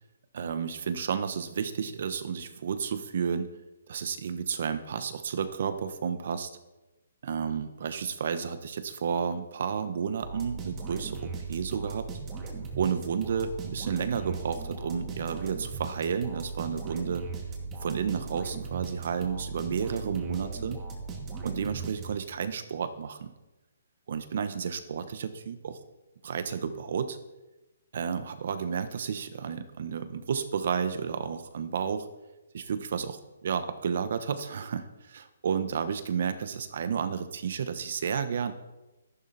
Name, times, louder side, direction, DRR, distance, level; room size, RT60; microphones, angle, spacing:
voice 1, 0.3-3.5 3.9-6.5 7.2-12.1 12.8-17.3 17.8-20.8 21.4-23.3 24.1-25.8 26.2-27.2 27.9-32.1 32.5-38.5, right 6 dB, 55° right, 10 dB, 1.4 m, -31 dB
sound 1, 10.2-22.4, right 4 dB, 20° right, 2.5 m, -38 dB
13.5 x 11.5 x 4.4 m, 1.0 s
hypercardioid pair, 160°, 0 cm